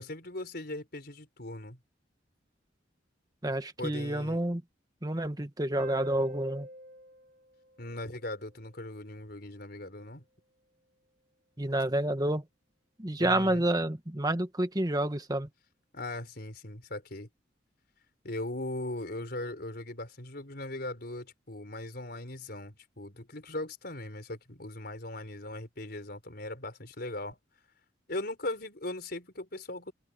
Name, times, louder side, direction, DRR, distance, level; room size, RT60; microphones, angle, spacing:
voice 1, 0.0-1.8 3.8-4.4 7.8-10.2 13.2-13.7 15.9-17.3 18.2-27.4 28.1-29.9, left 1 dB, 55° left, 4.8 m, -39 dB
voice 2, 3.4-4.6 5.0-6.7 11.6-12.4 13.0-15.5, right 1 dB, 20° right, 1.4 m, -29 dB
sound 1, 5.8-8.9, equal, 45° right, 3.4 m, -46 dB
open air
head